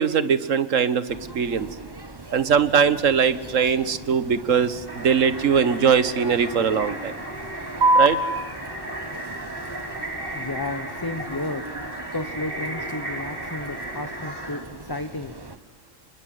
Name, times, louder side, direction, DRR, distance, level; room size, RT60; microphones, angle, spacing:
voice 1, 0.0-1.7 2.3-7.1 7.9-8.2, right 7 dB, 85° right, 14 dB, 1.6 m, -21 dB
sound 1, 1.1-15.6, right 2 dB, 20° right, 1.2 m, -40 dB
sound 2, 4.9-14.6, right 1 dB, 45° right, 4.2 m, -35 dB
sound 3, 7.8-14.8, right 2 dB, 60° right, 3.0 m, -29 dB
voice 2, 10.3-11.7 12.1-15.4, left 2 dB, 20° left, 10 dB, 0.9 m, -32 dB
28.5 x 22.5 x 9.4 m, 1.2 s
omnidirectional pair, 1.3 m